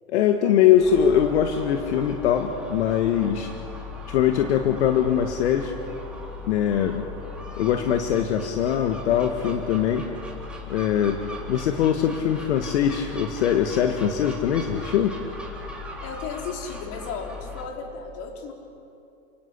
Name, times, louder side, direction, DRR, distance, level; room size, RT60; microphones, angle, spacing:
voice 1, 0.1-3.5 4.1-5.7 6.5-7.0 7.6-10.1 10.7-11.2 11.5-15.2, left 9 dB, 70° left, 5 dB, 1.9 m, -22 dB
Gull seagull, 0.8-17.7, left 4 dB, 5° right, 3.8 m, -38 dB
voice 2, 16.0-18.5, left 5 dB, 40° left, 2 dB, 4.7 m, -35 dB
30.0 x 18.5 x 8.5 m, 2.7 s
hypercardioid pair, 125°, 35 cm